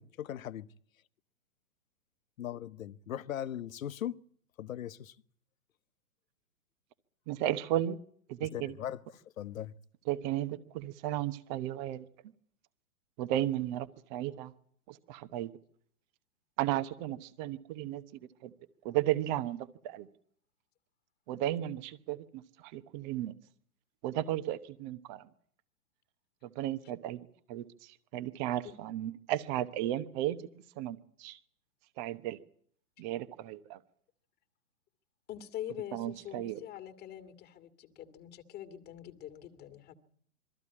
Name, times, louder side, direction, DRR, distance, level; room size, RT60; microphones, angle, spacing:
voice 1, 0.0-0.7 2.4-4.1 4.6-5.2 8.5-9.0 9.4-9.7, left 11 dB, 65° left, 1.0 m, -39 dB
voice 2, 7.3-8.0 8.3-8.7 10.1-12.1 13.2-14.5 14.9-15.5 16.6-18.0 18.4-18.5 18.8-20.1 21.3-23.3 24.0-25.3 26.4-30.4 30.8-31.4 32.0-32.4 33.0-33.8 35.9-36.6, right 13 dB, 30° right, 1.0 m, -34 dB
voice 3, 35.3-39.9, left 11 dB, 20° left, 2.0 m, -44 dB
22.0 x 14.5 x 9.8 m
hypercardioid pair, 130°, 44 cm